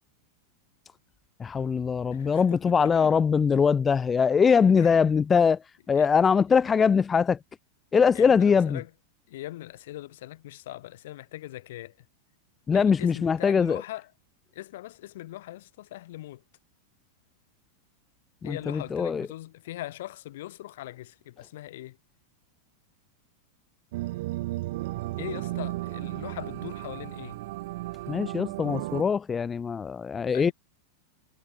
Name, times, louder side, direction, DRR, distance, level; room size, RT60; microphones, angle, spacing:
voice 1, 1.4-7.4 7.9-8.8 12.7-13.8 18.4-19.3 28.1-30.5, left 6 dB, 20° left, 1.1 m, -22 dB
voice 2, 2.1-3.2 4.7-5.0 5.9-6.1 6.5-6.6 8.1-8.9 9.3-12.0 12.7-14.1 14.5-16.4 18.4-22.0 25.2-27.4 30.3-30.5, left 15 dB, 55° left, 6.3 m, -40 dB
sound 1, 23.9-29.0, right 18 dB, 50° right, 0.6 m, -34 dB
figure-of-eight pair, 90°, 0 cm